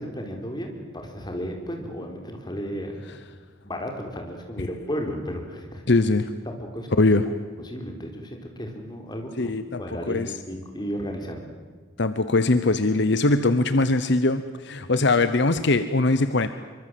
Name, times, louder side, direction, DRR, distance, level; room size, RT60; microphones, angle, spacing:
voice 1, 0.0-3.0 3.6-5.8 6.5-7.1 7.6-9.5 9.8-11.4, equal, 20° left, 3 dB, 4.0 m, -34 dB
voice 2, 5.9-6.3 7.0-7.2 9.4-9.8 10.1-10.3 12.0-16.5, left 2 dB, 60° left, 11 dB, 1.0 m, -21 dB
25.5 x 24.0 x 7.7 m, 1.5 s
head